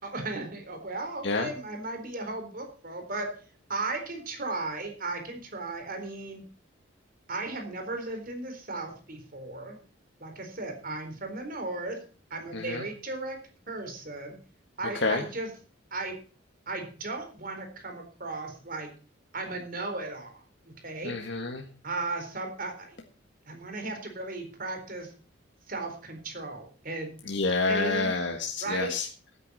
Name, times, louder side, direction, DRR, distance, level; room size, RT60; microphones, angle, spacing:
voice 1, 0.0-3.3 3.7-6.4 7.3-9.8 10.2-12.0 12.3-13.4 13.7-14.4 14.8-15.5 15.9-16.1 16.7-18.9 19.3-21.2 21.8-23.0 23.5-25.1 25.7-27.1 27.7-28.1 28.6-28.9, right 2 dB, 45° right, 4 dB, 4.1 m, -36 dB
voice 2, 12.5-12.8 14.9-15.2 21.0-21.6 27.3-29.1, left 3 dB, 60° left, 2 dB, 1.7 m, -28 dB
15.5 x 9.9 x 4.2 m, 0.39 s
head